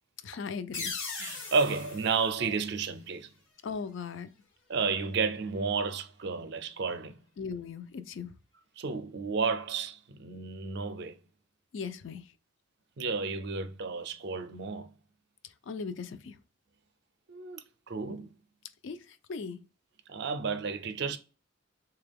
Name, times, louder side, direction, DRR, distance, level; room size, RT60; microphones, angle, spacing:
voice 1, 0.2-1.0 3.6-4.3 7.4-8.3 11.7-12.3 15.4-16.4 18.8-19.6, left 5 dB, 65° left, 0.4 m, -38 dB
sound 1, 0.7-3.3, left 4 dB, 85° left, 1.1 m, -40 dB
voice 2, 1.2-3.3 4.7-7.2 8.8-11.2 13.0-14.9 17.3-18.3 20.1-21.2, right 5 dB, 55° right, 0.4 m, -32 dB
3.6 x 2.3 x 3.4 m
head